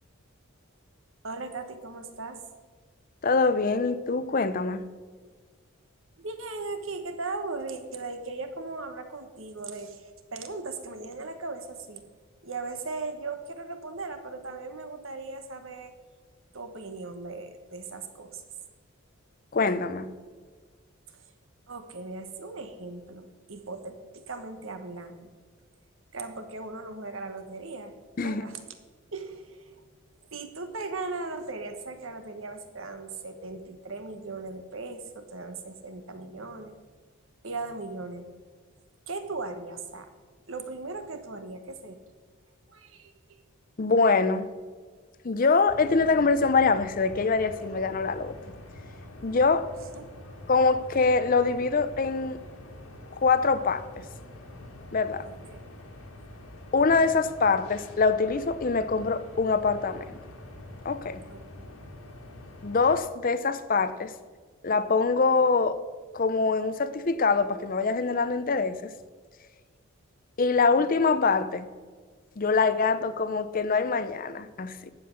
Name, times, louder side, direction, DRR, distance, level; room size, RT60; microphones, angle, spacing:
voice 1, 1.2-2.4 6.2-12.0 12.4-15.9 16.5-18.4 21.1-21.2 21.7-25.3 26.1-28.7 29.1-29.9 30.3-36.8 37.4-38.3 39.1-40.1 40.5-42.0 42.7-43.4 50.0-50.4 55.2-55.6 61.3-61.7, right 3 dB, 65° right, 1.2 m, -38 dB
voice 2, 3.2-4.8 19.5-20.1 28.2-28.4 43.8-44.5 45.2-48.3 49.2-49.7 50.5-52.4 53.1-54.1 54.9-55.3 56.7-60.2 60.8-61.2 62.6-64.1 64.6-65.8 66.1-68.9 70.4-71.7 72.4-74.9, left 4 dB, 40° left, 0.5 m, -24 dB
sound 1, 45.7-63.0, left 1 dB, 80° left, 2.0 m, -45 dB
11.0 x 7.6 x 6.2 m
head